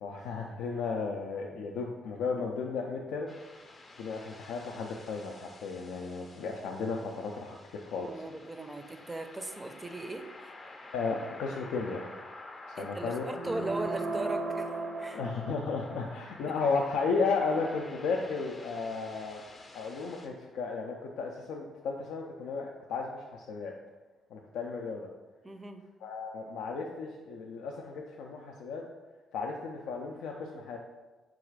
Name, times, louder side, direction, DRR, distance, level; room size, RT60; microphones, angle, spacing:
voice 1, 0.0-3.3 4.0-8.2 10.9-12.1 12.7-13.2 15.1-19.4 19.7-23.7 24.3-25.1 26.0-28.8 29.3-30.8, left 4 dB, 85° left, 0 dB, 0.3 m, -34 dB
sound 1, 3.3-20.3, left 2 dB, 40° left, 0.6 m, -50 dB
voice 2, 8.1-10.5 12.8-15.2 16.5-16.6 25.4-25.9, right 2 dB, 20° right, 7 dB, 0.4 m, -38 dB
sound 2, 13.4-16.0, right 3 dB, 75° right, 0.6 m, -36 dB
4.0 x 2.4 x 4.6 m, 1.2 s
cardioid pair, 90°, 0 cm